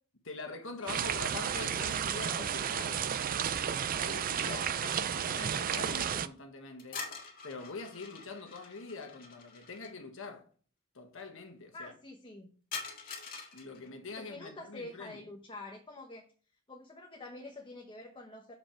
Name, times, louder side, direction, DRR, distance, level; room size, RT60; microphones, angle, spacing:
voice 1, 0.2-3.1 3.9-7.1 7.4-10.5 10.9-11.9 13.5-15.2, left 3 dB, 65° left, 1.3 m, -44 dB
sound 1, 0.9-6.3, right 8 dB, 40° right, 0.4 m, -32 dB
voice 2, 4.3-5.2 11.7-12.5 14.2-16.3 16.7-18.5, left 2 dB, 25° left, 0.9 m, -47 dB
sound 2, 6.8-9.9 12.7-13.9, left 5 dB, 45° left, 1.8 m, -44 dB
6.7 x 5.1 x 4.4 m
head